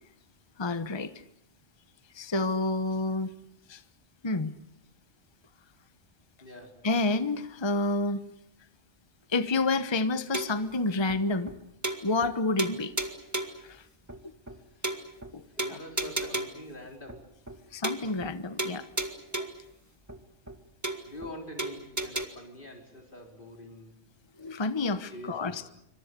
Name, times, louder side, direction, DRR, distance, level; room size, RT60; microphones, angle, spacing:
voice 1, 0.6-1.1 2.1-3.3 3.7-3.8 4.2-4.5 6.8-8.2 9.3-11.5 12.0-12.9 13.6-13.8 15.3-15.4 15.7-15.8 17.7-18.9 19.4-19.5 24.4-25.7, left 3 dB, 25° left, 11 dB, 1.0 m, -29 dB
voice 2, 6.4-6.8 15.5-17.3 17.6-17.8 21.0-24.0 25.1-25.7, left 1 dB, 45° left, 2 dB, 4.7 m, -45 dB
sound 1, 10.3-10.7 11.1-11.2 11.5-11.6 11.8-12.3 12.6-13.6 14.1-14.2 14.5-14.6 14.8-15.3 15.6-16.7 17.1-17.2 17.5-17.6 17.8-18.3 18.6-19.7 20.1-20.2 20.5-20.6 20.8-21.3 21.6-22.2, right 1 dB, 15° right, 1.9 m, -34 dB
27.5 x 25.0 x 6.8 m, 0.78 s
omnidirectional pair, 1.2 m